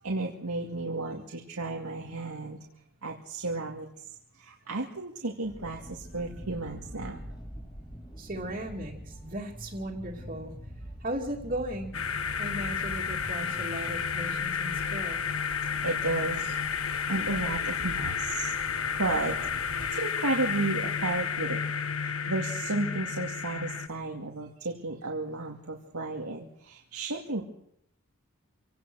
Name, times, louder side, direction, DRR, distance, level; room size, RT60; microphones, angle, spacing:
voice 1, 0.0-2.6 3.0-4.1 4.3-7.2 15.8-16.6 16.8-21.6 22.0-27.4, right 2 dB, 85° right, 0 dB, 2.3 m, -33 dB
sound 1, 5.4-19.9, equal, 20° left, 4.3 m, -45 dB
voice 2, 8.2-10.5 11.0-12.0 12.4-15.2, right 1 dB, 35° right, -4 dB, 2.7 m, -36 dB
sound 2, 11.9-23.9, left 6 dB, 75° left, 1.4 m, -31 dB
27.0 x 18.0 x 6.4 m, 0.73 s
head